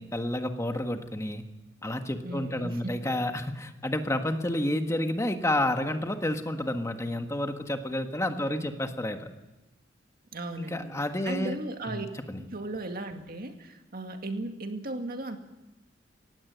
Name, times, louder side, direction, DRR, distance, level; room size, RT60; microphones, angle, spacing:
voice 1, 0.0-1.4 1.8-9.3 10.6-11.6 11.9-12.4, left 1 dB, 15° left, 6 dB, 1.5 m, -30 dB
voice 2, 2.2-3.0 8.3-8.8 10.3-10.9 11.2-12.1 12.4-15.4, right 2 dB, 50° right, 5 dB, 2.1 m, -36 dB
18.5 x 16.0 x 9.2 m, 1.0 s
head